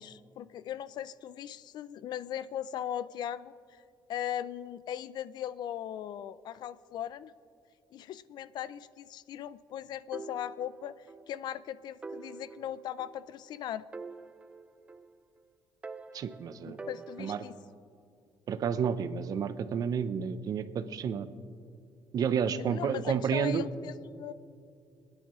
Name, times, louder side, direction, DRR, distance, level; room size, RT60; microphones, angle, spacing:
voice 1, 0.0-3.8 4.1-7.3 7.9-13.9 16.6-17.6 22.6-24.3, left 10 dB, 60° left, 17 dB, 0.4 m, -39 dB
sound 1, 10.1-11.3 11.6-11.7 12.0-13.5 13.9-15.4 15.8-17.7, right 4 dB, 15° right, 0.3 m, -46 dB
voice 2, 16.1-16.8 17.2-17.4 18.5-21.3 22.1-23.7, right 7 dB, 50° right, 11 dB, 0.6 m, -30 dB
29.0 x 9.9 x 3.1 m, 2.4 s
cardioid pair, 135°, 8 cm